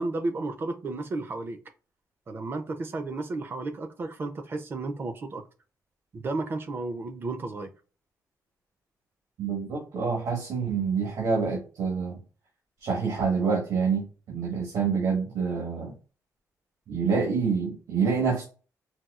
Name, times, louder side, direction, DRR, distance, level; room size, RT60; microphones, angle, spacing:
voice 1, 0.0-1.6 2.3-5.4 6.1-7.7, right 2 dB, 35° right, 0.4 m, -33 dB
voice 2, 9.4-12.2 12.8-16.0 16.9-18.4, right 5 dB, 85° right, 1.2 m, -27 dB
4.1 x 2.3 x 2.3 m
wide cardioid pair, 150°, 7 cm